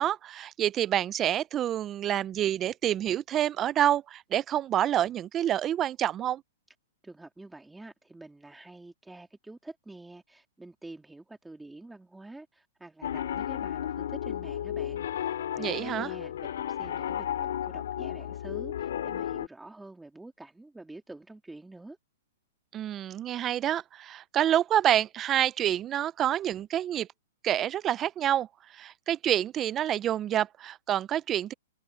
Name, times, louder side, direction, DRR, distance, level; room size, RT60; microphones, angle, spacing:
voice 1, 0.0-6.4 15.6-16.1 22.7-27.1 27.4-31.5, right 11 dB, 20° right, 0.3 m, -28 dB
voice 2, 7.0-22.0, right 2 dB, 5° right, 2.5 m, -47 dB
Piano, 13.0-19.5, left 10 dB, 75° left, 2.1 m, -33 dB
hypercardioid pair, 150°, 0 cm